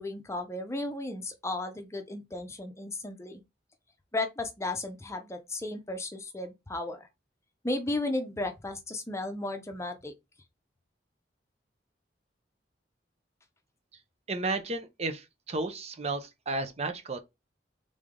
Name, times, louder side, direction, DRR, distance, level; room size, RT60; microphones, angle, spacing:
voice 1, 0.0-3.4 4.1-7.1 7.6-10.1, left 2 dB, 15° left, 0.7 m, -34 dB
voice 2, 14.3-17.2, right 3 dB, 35° right, 0.7 m, -33 dB
3.8 x 3.2 x 3.7 m
head